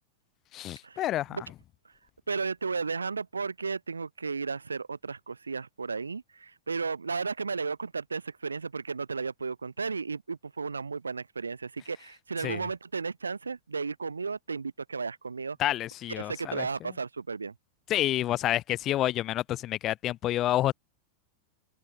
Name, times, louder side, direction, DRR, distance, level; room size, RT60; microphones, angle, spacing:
voice 1, 0.5-1.4 12.4-12.6 15.6-16.7 17.9-20.7, left 13 dB, 35° left, 2.8 m, -28 dB
voice 2, 2.3-15.6 16.1-17.5, right 4 dB, 75° right, 4.9 m, -34 dB
figure-of-eight pair, 90°, 0 cm